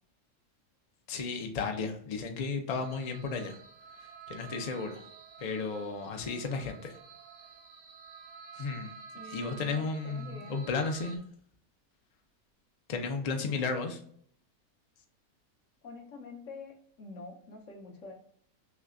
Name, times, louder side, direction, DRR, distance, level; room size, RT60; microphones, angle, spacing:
voice 1, 1.1-3.5 4.3-5.0 5.4-6.9 8.6-8.9 9.3-11.2 12.9-14.0, left 4 dB, 85° left, 4 dB, 0.3 m, -34 dB
sound 1, 2.8-11.2, right 6 dB, 70° right, 0.8 m, -50 dB
voice 2, 9.1-10.7 13.4-14.0 15.8-18.1, left 3 dB, 60° left, 2 dB, 1.2 m, -47 dB
5.8 x 2.2 x 2.5 m, 0.62 s
omnidirectional pair, 1.6 m